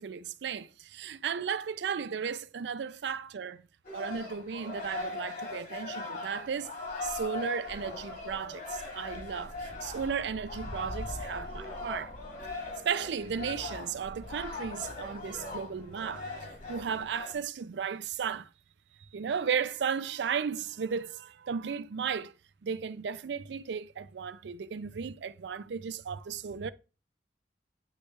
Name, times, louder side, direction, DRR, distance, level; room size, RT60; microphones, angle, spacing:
voice 1, 0.0-3.6 3.9-6.7 7.0-12.1 12.8-18.5 19.1-22.3 22.6-26.7, right 6 dB, 70° right, 0.4 m, -35 dB
sound 1, 3.8-17.3, left 3 dB, 50° left, 1.8 m, -40 dB
sound 2, 9.5-17.0, left 1 dB, 80° left, 3.1 m, -53 dB
9.4 x 3.2 x 3.2 m
head